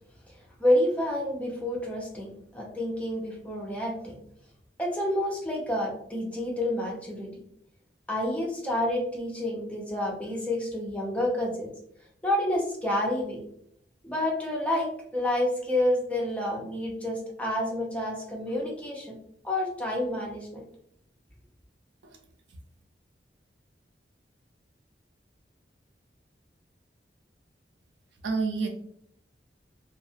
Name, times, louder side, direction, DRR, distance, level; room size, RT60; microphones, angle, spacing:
voice 1, 0.6-4.2 4.8-7.3 8.1-11.7 12.2-13.4 14.0-19.1 19.4-20.6, left 1 dB, 10° left, -2 dB, 0.6 m, -29 dB
voice 2, 28.2-28.7, right 4 dB, 75° right, 3 dB, 0.4 m, -29 dB
2.3 x 2.0 x 2.7 m, 0.69 s
head